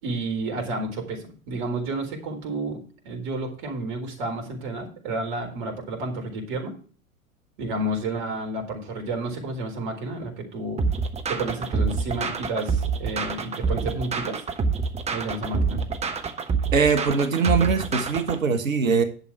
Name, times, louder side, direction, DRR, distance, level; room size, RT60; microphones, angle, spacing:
voice 1, 0.0-6.7 7.6-10.8 11.3-14.4 15.1-15.8, right 2 dB, 40° right, 4 dB, 4.2 m, -31 dB
sound 1, 10.8-18.4, right 4 dB, 15° right, 1.1 m, -27 dB
voice 2, 16.7-19.0, right 5 dB, 70° right, 8 dB, 1.5 m, -22 dB
11.0 x 7.2 x 4.7 m, 0.40 s
figure-of-eight pair, 95°, 42 cm